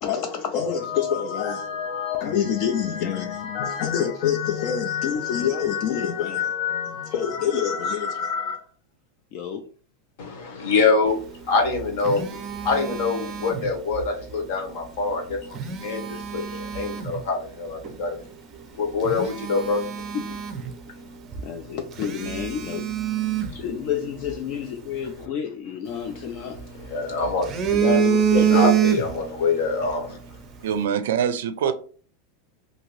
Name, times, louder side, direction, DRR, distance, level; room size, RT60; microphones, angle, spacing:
voice 1, 0.0-8.7 9.3-9.6 16.4-16.6 20.3-20.4 21.4-22.9 23.6-26.6 27.7-28.8, left 8 dB, 45° left, 0.3 m, -27 dB
voice 2, 10.2-11.2 11.5-12.4 12.6-18.2 18.8-19.8 23.5-23.6 26.8-27.7 28.5-30.2, left 4 dB, 60° left, 1.0 m, -25 dB
Telephone, 11.5-14.1 15.3-17.2 17.8-18.0 18.6-18.7 19.0-21.1 21.3-21.5 22.0-24.3 25.9-26.9 27.2-29.4 29.7-29.9, right 8 dB, 25° right, 0.5 m, -26 dB
voice 3, 30.6-31.7, right 8 dB, 80° right, 0.4 m, -24 dB
2.8 x 2.6 x 3.0 m
supercardioid pair, 155°, 0 cm